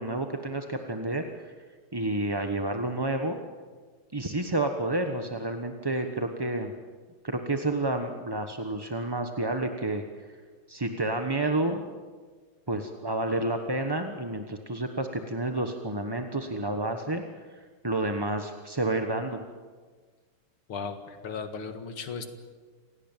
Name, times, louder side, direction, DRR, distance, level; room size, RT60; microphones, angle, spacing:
voice 1, 0.0-1.5 1.9-3.4 4.1-6.7 7.2-10.0 10.7-11.8 12.7-17.2 17.8-19.4, right 2 dB, 15° right, 5 dB, 0.8 m, -30 dB
voice 2, 20.7-22.3, left 5 dB, 75° left, 7 dB, 2.7 m, -36 dB
27.5 x 18.0 x 9.1 m, 1.5 s
omnidirectional pair, 2.4 m